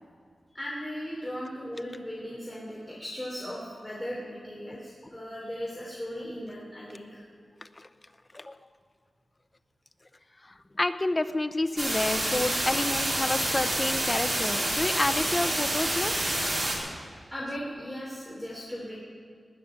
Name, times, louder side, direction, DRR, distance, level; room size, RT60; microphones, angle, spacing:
voice 1, 0.5-7.2 17.3-19.0, equal, 5° left, -6 dB, 3.2 m, -37 dB
voice 2, 10.8-16.4, left 2 dB, 25° left, 10 dB, 0.6 m, -29 dB
sound 1, 11.8-16.8, right 1 dB, 40° right, 4.4 m, -28 dB
19.0 x 6.7 x 9.9 m, 2.2 s
wide cardioid pair, 125°, 0 cm